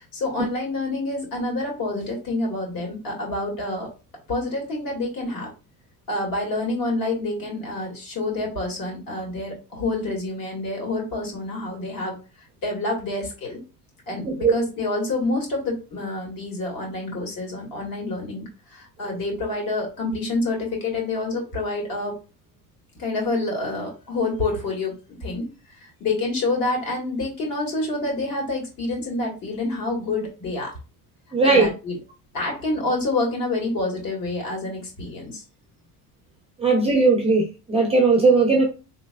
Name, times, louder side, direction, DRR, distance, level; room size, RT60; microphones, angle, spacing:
voice 1, 0.0-3.9 4.3-5.5 6.1-12.2 12.6-13.6 14.1-22.1 23.0-30.8 31.4-32.0 32.3-35.4, left 2 dB, 50° left, 2.1 m, -27 dB
voice 2, 31.3-31.7 36.6-38.6, right 3 dB, 15° right, 0.4 m, -18 dB
3.9 x 3.2 x 2.2 m
cardioid pair, 160°, 43 cm